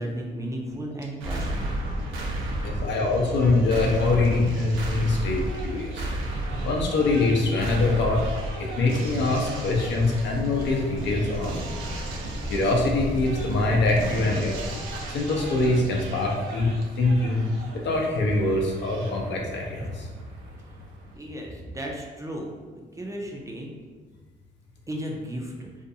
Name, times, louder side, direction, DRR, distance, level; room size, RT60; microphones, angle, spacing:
voice 1, 0.0-1.7 2.7-2.8 19.8-19.9 21.2-23.7 24.9-25.7, equal, 15° right, 0 dB, 0.4 m, -34 dB
sound 1, 1.2-21.2, right 1 dB, 80° right, 0.5 m, -34 dB
voice 2, 2.6-6.1 6.6-8.3 8.6-11.7 12.2-14.7 15.1-17.4 17.8-20.1, left 2 dB, 65° left, -1 dB, 0.6 m, -24 dB
sound 2, 8.6-16.4, equal, 30° left, 0.9 m, -37 dB
2.5 x 2.2 x 2.7 m, 1.4 s
cardioid pair, 90°, 20 cm